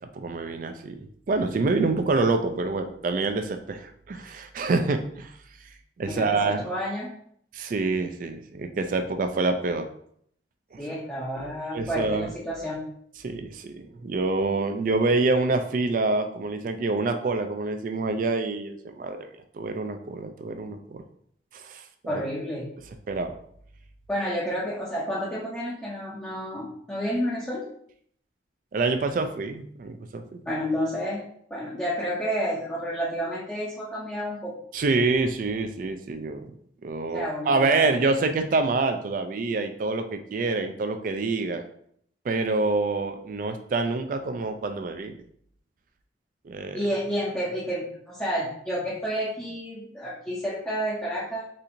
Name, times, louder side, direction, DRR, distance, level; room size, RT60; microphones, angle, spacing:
voice 1, 0.0-5.3 6.0-6.7 7.5-9.9 10.7-10.8 11.7-12.3 13.2-19.3 19.5-21.0 21.5-22.2 23.1-23.3 28.7-30.4 34.7-36.5 36.8-41.6 42.2-45.2 46.4-46.8, right 3 dB, 45° right, 7 dB, 0.3 m, -26 dB
voice 2, 6.1-7.2 10.8-12.8 22.0-22.7 24.1-27.7 30.5-31.2 31.5-34.5 37.1-37.9 46.7-51.4, equal, 10° left, -7 dB, 0.6 m, -30 dB
4.2 x 2.6 x 2.6 m, 0.66 s
head